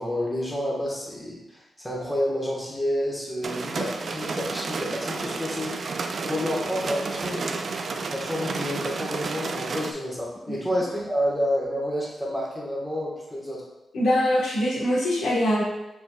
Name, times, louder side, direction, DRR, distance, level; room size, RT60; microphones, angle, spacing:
voice 1, 0.0-7.6 8.1-13.6, equal, 5° left, -5 dB, 1.3 m, -29 dB
sound 1, 3.4-9.9, right 4 dB, 55° right, 0.4 m, -31 dB
voice 2, 13.9-15.6, left 1 dB, 85° left, -5 dB, 1.3 m, -23 dB
4.6 x 4.3 x 2.3 m, 0.97 s
cardioid pair, 90°, 0 cm